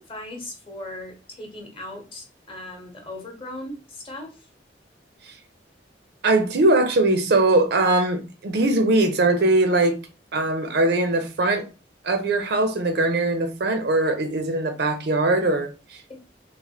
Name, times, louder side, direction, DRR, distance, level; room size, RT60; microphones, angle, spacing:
voice 1, 0.0-4.5, left 1 dB, 30° left, 0.8 m, -38 dB
voice 2, 6.2-10.0 10.3-11.7 12.0-15.7, right 2 dB, 65° right, 0.5 m, -21 dB
3.3 x 2.1 x 2.7 m
head